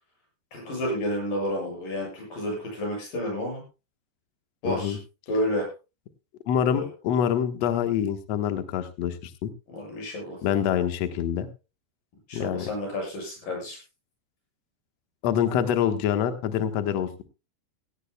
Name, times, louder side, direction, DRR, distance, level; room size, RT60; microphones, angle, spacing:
voice 1, 0.5-3.6 4.6-5.0 5.3-5.7 6.6-6.9 9.7-10.4 12.3-13.8, equal, 50° left, 0 dB, 9.3 m, -30 dB
voice 2, 4.6-5.0 6.5-9.5 10.4-11.5 12.3-12.7 15.2-17.2, left 9 dB, 80° left, 8 dB, 1.5 m, -26 dB
17.5 x 17.0 x 2.2 m, 0.30 s
omnidirectional pair, 5.0 m